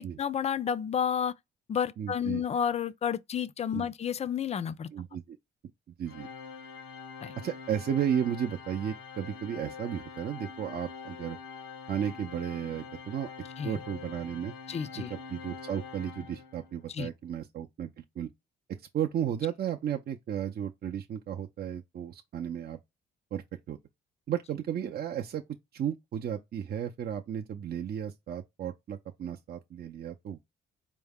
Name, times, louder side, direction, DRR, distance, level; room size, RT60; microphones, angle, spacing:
voice 1, 0.0-1.3 1.7-4.9 7.2-7.3 13.6-13.8 14.7-15.1 16.9-17.1, left 8 dB, 35° left, 0.4 m, -31 dB
voice 2, 2.0-2.4 3.7-3.9 4.9-5.4 6.0-6.3 7.4-11.4 11.9-13.3 13.6-14.5 15.0-18.3 18.9-22.8 23.3-23.8 24.3-25.4 25.7-30.4, right 9 dB, 50° right, 0.6 m, -34 dB
Organ, 6.1-16.8, left 5 dB, 90° left, 0.9 m, -45 dB
4.5 x 2.1 x 3.5 m
cardioid pair, 90°, 20 cm